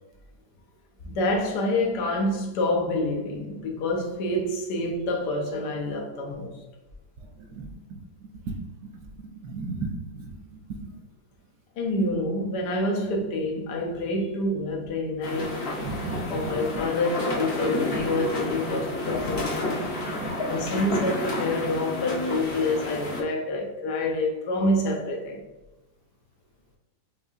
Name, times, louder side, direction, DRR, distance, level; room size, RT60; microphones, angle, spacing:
voice 1, 1.0-6.6 11.8-15.6 16.3-19.8 20.5-25.4, left 1 dB, 85° left, 1.3 m, -27 dB
voice 2, 7.4-11.0 15.8-16.6 17.9-18.0 19.4-19.5 19.8-20.6, right 3 dB, 70° right, 1.1 m, -37 dB
sound 1, 15.2-23.2, left 2 dB, 55° left, 0.7 m, -30 dB
5.3 x 2.7 x 2.4 m
omnidirectional pair, 1.8 m